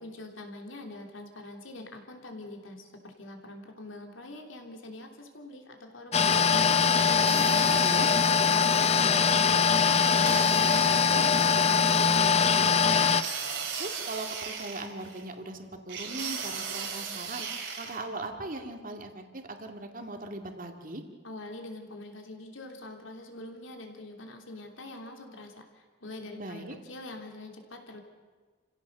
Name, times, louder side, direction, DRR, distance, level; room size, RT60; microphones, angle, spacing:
voice 1, 0.0-12.9 21.2-28.0, left 2 dB, 80° left, 3 dB, 3.2 m, -44 dB
sound 1, 6.1-13.2, left 6 dB, 35° left, 0.8 m, -22 dB
sound 2, 6.9-8.6 9.9-11.5 12.9-15.2 15.9-18.0, right 6 dB, 70° right, 3.5 m, -37 dB
voice 2, 7.6-8.1 13.8-17.5 17.8-21.0 26.4-26.8, right 2 dB, 45° right, 4 dB, 2.1 m, -39 dB
29.0 x 16.0 x 6.7 m, 1.5 s
head